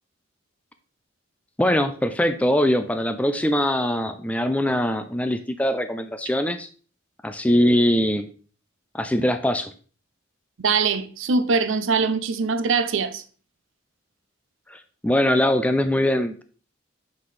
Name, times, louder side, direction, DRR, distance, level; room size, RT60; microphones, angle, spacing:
voice 1, 1.6-6.7 7.2-8.3 8.9-9.7 14.7-16.4, left 1 dB, 5° left, 0.4 m, -22 dB
voice 2, 10.6-13.2, right 4 dB, 75° right, 0.6 m, -22 dB
5.8 x 5.5 x 3.2 m
head